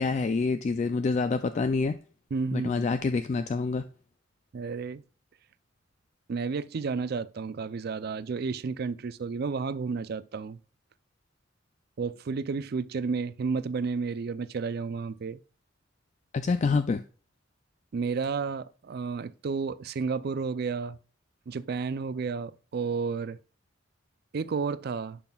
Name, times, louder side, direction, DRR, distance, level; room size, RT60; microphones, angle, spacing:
voice 1, 0.0-2.0 2.5-3.8 16.3-17.0, left 4 dB, 35° left, 0.3 m, -27 dB
voice 2, 2.3-2.8 4.5-5.0 6.3-10.6 12.0-15.4 17.9-21.0 21.5-23.4 24.3-25.2, right 5 dB, 55° right, 0.4 m, -31 dB
10.5 x 5.8 x 2.3 m
head